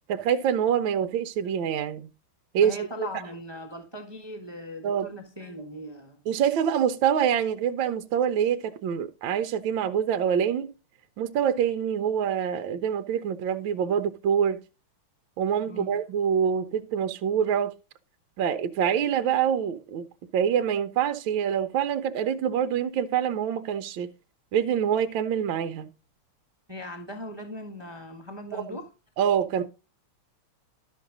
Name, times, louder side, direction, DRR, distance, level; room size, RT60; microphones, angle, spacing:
voice 1, 0.1-2.1 2.5-3.1 4.8-5.1 6.3-10.7 11.2-14.6 15.4-17.7 18.4-20.1 20.3-24.1 24.5-25.9 28.5-28.8 29.2-29.6, right 8 dB, 70° right, 1.4 m, -25 dB
voice 2, 2.6-6.2 15.7-16.0 26.7-28.9, left 1 dB, 15° right, 1.0 m, -39 dB
12.0 x 6.4 x 3.8 m
omnidirectional pair, 2.4 m